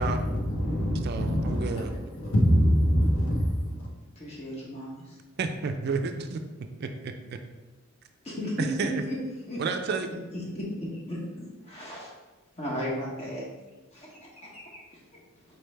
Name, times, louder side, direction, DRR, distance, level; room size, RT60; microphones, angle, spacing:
voice 1, 0.0-3.9, equal, 75° left, 1.0 m, -25 dB
voice 2, 1.0-1.9 5.4-6.4 6.8-7.1 8.6-9.0 9.6-10.1, right 4 dB, 50° right, 0.3 m, -30 dB
voice 3, 4.1-5.2 8.2-9.2 9.5-9.6 10.3-12.1 12.6-13.4 13.9-14.8, equal, 30° left, 1.1 m, -35 dB
4.6 x 3.3 x 3.2 m
head